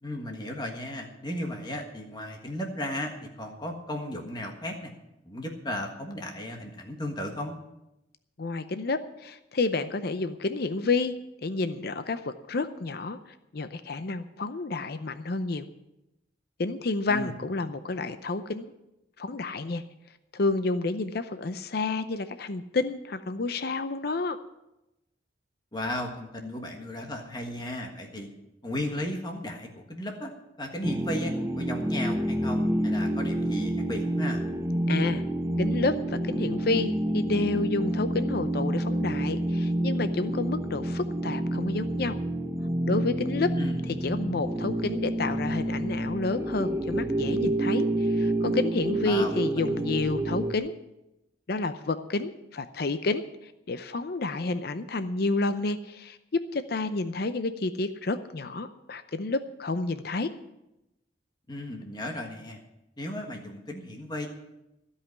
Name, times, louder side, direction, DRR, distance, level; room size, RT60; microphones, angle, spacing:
voice 1, 0.0-4.9 5.2-7.5 17.1-17.3 25.7-28.3 28.6-30.3 30.6-34.4 43.6-43.8 49.0-49.8 61.5-62.6 63.0-64.3, left 1 dB, 25° left, 2 dB, 1.5 m, -35 dB
voice 2, 8.4-11.1 11.4-13.2 13.5-15.6 16.6-18.7 19.2-19.8 20.3-24.4 34.9-35.2 35.6-42.2 42.9-43.5 44.0-50.7 51.5-60.3, left 3 dB, 60° left, 10 dB, 0.6 m, -30 dB
sound 1, 30.8-50.6, right 1 dB, 15° right, 0.7 m, -28 dB
15.5 x 5.7 x 9.4 m, 0.92 s
head